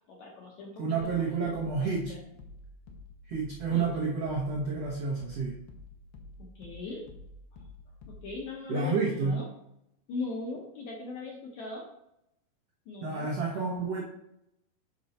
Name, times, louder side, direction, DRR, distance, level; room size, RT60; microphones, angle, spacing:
voice 1, 0.1-0.8 1.2-1.5 1.8-2.2 3.7-3.9 6.4-7.0 8.2-9.4 10.1-11.9 12.9-13.3, left 3 dB, 70° left, 0 dB, 1.8 m, -39 dB
voice 2, 0.8-2.1 3.2-5.6 8.7-9.4 13.0-14.0, right 4 dB, 90° right, -2 dB, 1.3 m, -30 dB
sound 1, 1.0-8.5, left 2 dB, 90° left, 3.0 m, -50 dB
7.7 x 5.3 x 4.2 m, 0.79 s
omnidirectional pair, 4.5 m